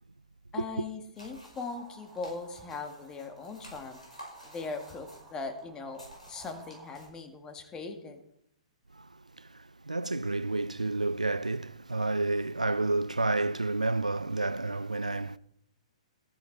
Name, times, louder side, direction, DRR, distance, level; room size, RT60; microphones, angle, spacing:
voice 1, 0.5-4.0 4.4-8.2, left 4 dB, 15° left, 1.9 m, -40 dB
sound 1, 1.2-7.1, equal, 85° left, 5.6 m, -52 dB
sound 2, 1.2-7.1, right 4 dB, 15° right, 2.6 m, -55 dB
voice 2, 9.4-15.4, right 2 dB, 90° right, 0.4 m, -30 dB
14.0 x 9.2 x 4.7 m
figure-of-eight pair, 120°, 4 cm